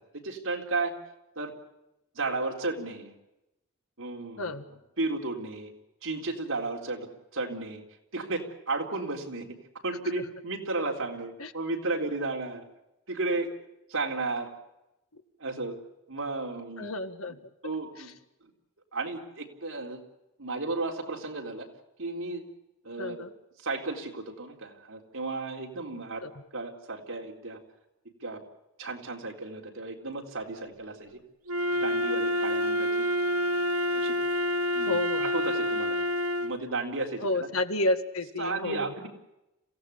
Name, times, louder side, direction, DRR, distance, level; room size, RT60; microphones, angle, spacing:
voice 1, 0.1-0.9 1.4-1.5 2.1-3.1 4.0-4.5 5.0-5.7 6.0-7.1 7.3-7.8 8.1-9.5 9.8-12.6 13.1-13.5 13.9-14.5 15.4-15.8 16.1-16.9 17.3-17.4 17.6-18.1 18.9-20.0 20.4-21.7 22.0-22.4 22.8-23.3 23.6-26.2 26.5-27.6 28.2-28.4 28.8-31.1 31.7-33.1 33.9-34.2 34.7-36.0 36.4-37.3 38.4-39.1, right 3 dB, 70° right, 1 dB, 4.0 m, -33 dB
voice 2, 16.8-17.4 23.0-23.3 26.2-26.3 34.9-35.3 37.2-38.9, left 2 dB, 75° left, 8 dB, 1.8 m, -30 dB
Wind instrument woodwind instrument, 31.5-36.6, left 1 dB, 85° right, 1.4 m, -28 dB
27.5 x 16.5 x 8.5 m, 0.93 s
head